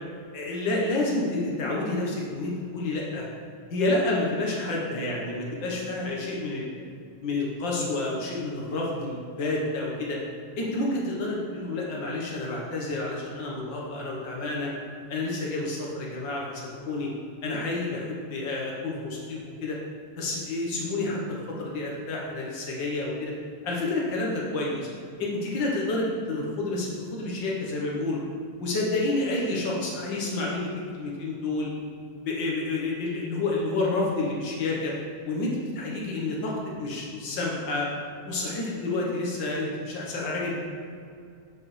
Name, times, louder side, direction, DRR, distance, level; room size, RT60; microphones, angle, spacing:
voice 1, 0.3-3.3 3.7-6.8 7.2-10.2 10.6-14.7 15.1-17.1 17.4-19.8 20.2-23.3 23.6-24.9 25.2-28.2 28.6-31.7 32.2-34.9 35.2-36.5 36.8-37.9 38.3-40.6, left 2 dB, 65° left, -3 dB, 1.1 m, -29 dB
7.8 x 6.9 x 3.2 m, 2.3 s
omnidirectional pair, 3.6 m